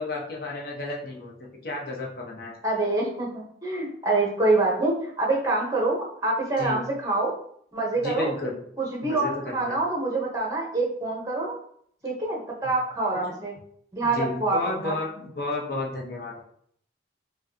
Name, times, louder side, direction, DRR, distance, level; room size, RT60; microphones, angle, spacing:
voice 1, 0.0-2.6 6.6-6.8 8.0-8.5 9.0-9.8 14.1-16.4, left 2 dB, 55° left, -2 dB, 0.9 m, -32 dB
voice 2, 2.6-7.4 7.7-8.3 8.8-11.6 12.0-13.5 13.9-15.0, right 2 dB, 20° right, -2 dB, 0.9 m, -26 dB
4.9 x 2.3 x 2.7 m, 0.65 s
head